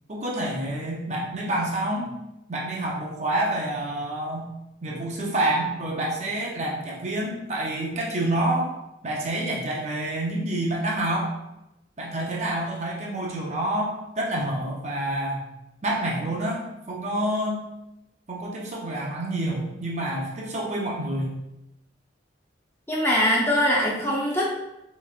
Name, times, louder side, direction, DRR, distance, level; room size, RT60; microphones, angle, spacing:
voice 1, 0.1-2.1 2.5-4.5 4.8-8.7 9.0-11.3 12.0-15.4 15.8-17.7 18.3-21.4, right 1 dB, 35° right, -3 dB, 0.7 m, -28 dB
voice 2, 22.9-24.5, equal, 15° left, -4 dB, 0.7 m, -22 dB
5.2 x 3.1 x 2.4 m, 0.89 s
head